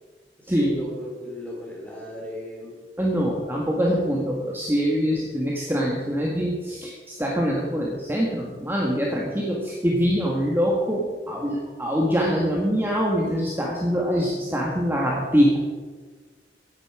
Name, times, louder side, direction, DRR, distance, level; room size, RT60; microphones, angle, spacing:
voice 1, 0.4-2.8, left 1 dB, 10° left, -3 dB, 4.1 m, -36 dB
voice 2, 3.0-15.6, equal, 15° right, -3 dB, 1.9 m, -24 dB
16.0 x 11.0 x 5.0 m, 1.4 s
head